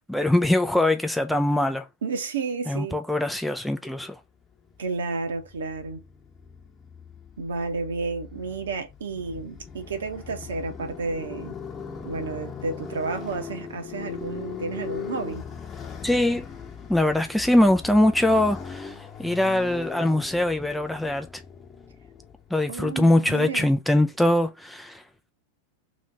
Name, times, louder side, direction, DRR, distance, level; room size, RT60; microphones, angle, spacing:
voice 1, 0.1-1.9 2.7-4.2 16.0-16.5 16.9-21.4 22.5-25.0, left 1 dB, ahead, 0.4 m, -22 dB
voice 2, 2.0-3.0 4.8-6.0 7.4-11.5 12.0-15.4 22.7-23.7, right 4 dB, 65° right, 1.0 m, -31 dB
Motorcycle, 4.5-22.7, left 6 dB, 20° left, 1.1 m, -40 dB
3.1 x 3.1 x 3.8 m
figure-of-eight pair, 90°, 0 cm